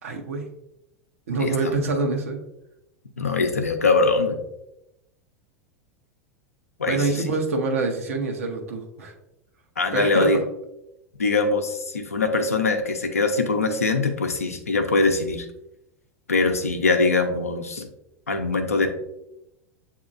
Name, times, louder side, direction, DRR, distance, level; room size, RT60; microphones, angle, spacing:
voice 1, 0.0-0.5 1.3-2.4 6.9-9.1 9.9-10.4, right 3 dB, 75° right, 3 dB, 0.9 m, -26 dB
voice 2, 1.4-1.7 3.2-4.4 6.8-7.0 9.8-10.4 11.2-15.5 16.3-17.9 18.3-18.9, left 3 dB, 90° left, 5 dB, 0.6 m, -22 dB
7.7 x 2.8 x 2.5 m, 0.86 s
figure-of-eight pair, 85°, 8 cm